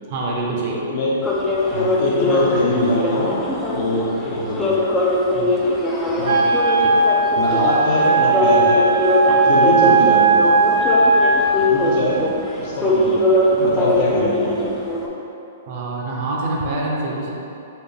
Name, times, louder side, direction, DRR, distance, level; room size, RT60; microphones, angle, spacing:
voice 1, 0.1-0.8 5.3-5.5 6.8-6.9 9.3-9.5 15.7-17.3, right 2 dB, 40° right, -3 dB, 0.6 m, -26 dB
voice 2, 0.7-1.3 1.7-4.8 6.2-6.5 7.3-8.9 9.4-10.5 11.6-14.7, left 1 dB, 40° left, -4 dB, 0.7 m, -23 dB
sound 1, 1.2-15.1, left 1 dB, 10° left, 0.4 m, -21 dB
Wind instrument woodwind instrument, 6.2-11.6, right 3 dB, 90° right, 0.3 m, -17 dB
4.1 x 2.4 x 3.4 m, 2.8 s
hypercardioid pair, 160°, 0 cm